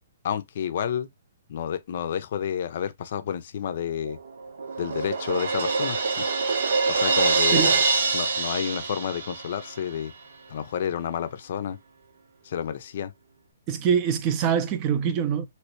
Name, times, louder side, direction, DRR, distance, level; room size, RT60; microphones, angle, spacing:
voice 1, 0.2-1.1 1.5-4.2 4.8-6.3 6.9-7.8 8.1-10.1 10.5-11.8 12.4-13.1, left 9 dB, 55° left, 0.5 m, -30 dB
Crash cymbal, 4.0-9.8, right 4 dB, 70° right, 0.8 m, -25 dB
voice 2, 13.7-15.5, right 8 dB, 25° right, 0.5 m, -24 dB
3.1 x 3.0 x 2.9 m
hypercardioid pair, 150°, 0 cm